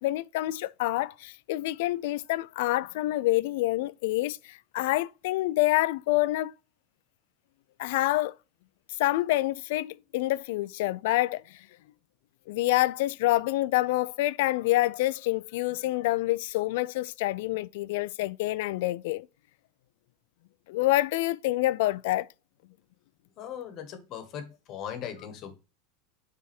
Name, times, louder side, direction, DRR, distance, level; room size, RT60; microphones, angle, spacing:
voice 1, 0.0-6.5 7.8-8.3 9.0-11.6 12.5-19.3 20.7-22.3, left 17 dB, 65° left, 0.3 m, -27 dB
voice 2, 23.4-25.6, left 9 dB, 35° left, 1.2 m, -39 dB
7.5 x 3.5 x 4.3 m
supercardioid pair, 165°, 0 cm